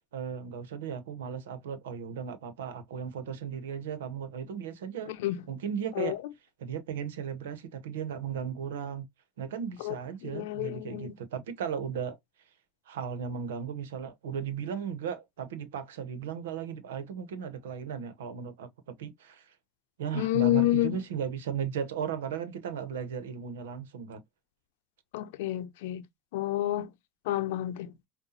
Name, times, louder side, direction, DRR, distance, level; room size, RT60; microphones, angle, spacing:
voice 1, 0.1-5.1 5.5-6.1 6.6-9.1 9.4-12.2 12.9-18.7 19.0-19.5 20.0-24.2, right 7 dB, 90° right, 0.8 m, -36 dB
voice 2, 5.1-5.4 6.0-6.2 9.8-10.0 10.2-11.2 20.1-21.0 25.1-26.0 26.3-26.9 27.3-27.9, left 15 dB, 80° left, 0.6 m, -29 dB
5.4 x 2.2 x 2.7 m
hypercardioid pair, 80°, 0 cm